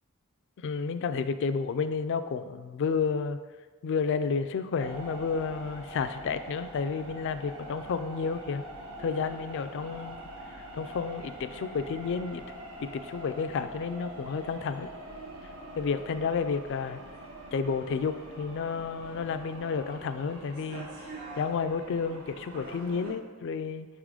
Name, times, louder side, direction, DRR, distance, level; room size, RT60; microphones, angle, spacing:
voice 1, 0.6-3.4 3.8-8.6 9.0-10.2 10.7-12.4 12.8-14.9 15.8-17.0 17.5-20.9 21.4-23.9, left 5 dB, 55° left, 11 dB, 0.3 m, -31 dB
sound 1, 4.8-23.1, right 1 dB, 70° right, 1.4 m, -44 dB
5.5 x 3.7 x 4.8 m, 1.3 s
head